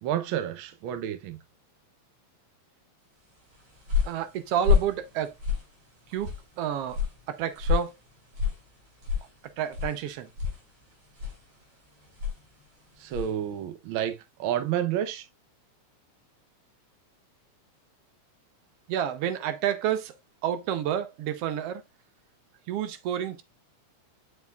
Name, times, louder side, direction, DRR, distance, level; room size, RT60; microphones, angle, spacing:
voice 1, 0.0-1.4 13.0-15.3, right 10 dB, 90° right, 1.1 m, -30 dB
sound 1, 3.3-13.4, left 7 dB, 50° right, 4.2 m, -31 dB
voice 2, 4.0-5.3 6.1-7.0 7.3-8.0 9.6-10.3 18.9-20.1 20.4-21.8 22.7-23.4, right 10 dB, 70° right, 1.5 m, -29 dB
7.0 x 6.8 x 2.3 m
omnidirectional pair, 3.3 m